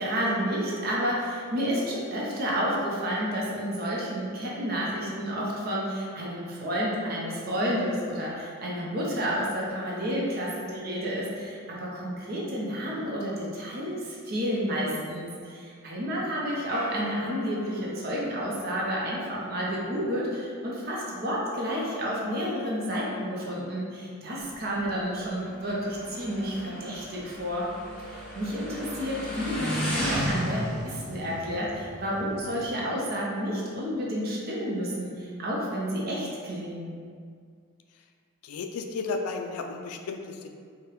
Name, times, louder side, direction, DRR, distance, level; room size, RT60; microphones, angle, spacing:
voice 1, 0.0-27.7 28.1-36.9, equal, 45° right, -4 dB, 0.6 m, -30 dB
sound 1, 16.7-19.4, left 1 dB, 55° left, 1.4 m, -42 dB
Motorcycle, 24.4-32.7, equal, 5° left, 0.4 m, -35 dB
voice 2, 38.4-40.5, left 4 dB, 85° left, 5 dB, 0.3 m, -33 dB
4.7 x 2.1 x 3.1 m, 2.1 s
head